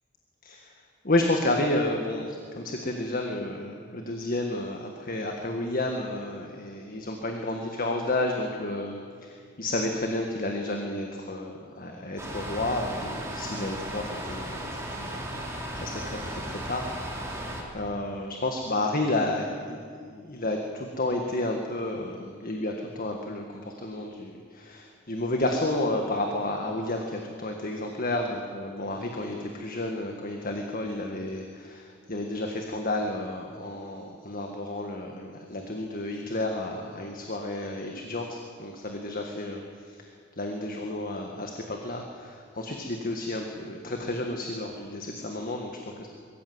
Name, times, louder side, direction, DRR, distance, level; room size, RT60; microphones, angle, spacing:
voice 1, 0.4-14.7 15.0-17.5 17.7-40.1 40.4-46.1, left 1 dB, 45° left, 2 dB, 1.6 m, -31 dB
sound 1, 12.2-17.6, right 1 dB, 15° right, 3.5 m, -35 dB
22.5 x 14.5 x 7.9 m, 2.1 s
head